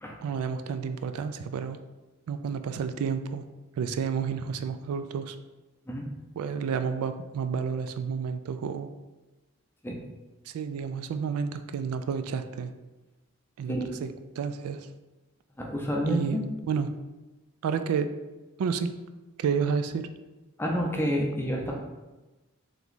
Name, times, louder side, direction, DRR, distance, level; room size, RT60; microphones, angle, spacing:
voice 1, 0.2-1.8 2.3-3.5 3.8-5.4 6.4-8.9 10.5-12.7 13.6-14.9 16.1-16.9 17.6-18.1 18.6-18.9 19.4-20.1, right 6 dB, 85° right, 10 dB, 0.3 m, -30 dB
voice 2, 15.6-16.5 20.6-21.7, equal, 10° left, -1 dB, 0.5 m, -29 dB
3.3 x 3.0 x 4.0 m, 1.1 s
head